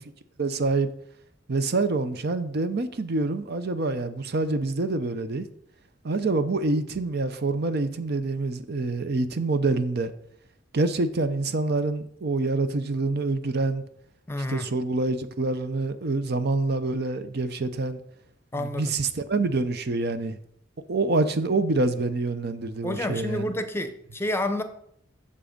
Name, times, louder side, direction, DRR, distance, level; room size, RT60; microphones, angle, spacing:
voice 1, 0.4-0.9 1.5-5.5 6.0-10.1 10.7-13.8 14.5-18.0 18.5-20.4 20.9-23.5, right 3 dB, 55° right, 0.6 m, -26 dB
voice 2, 14.3-14.7 18.5-18.9 22.8-24.6, left 1 dB, 15° left, 0.7 m, -29 dB
7.5 x 6.9 x 5.1 m
head